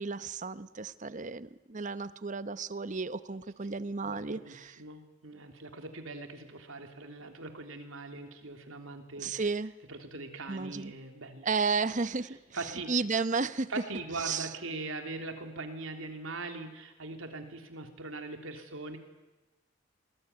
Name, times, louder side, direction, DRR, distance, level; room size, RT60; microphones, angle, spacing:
voice 1, 0.0-4.7 9.2-9.7 10.5-10.9 11.4-13.7 14.2-14.5, right 4 dB, 40° right, 14 dB, 0.9 m, -33 dB
voice 2, 4.0-9.5 9.9-11.5 12.5-12.9 13.7-19.0, right 3 dB, 75° right, 5 dB, 3.3 m, -41 dB
26.5 x 20.5 x 9.7 m, 1.1 s
head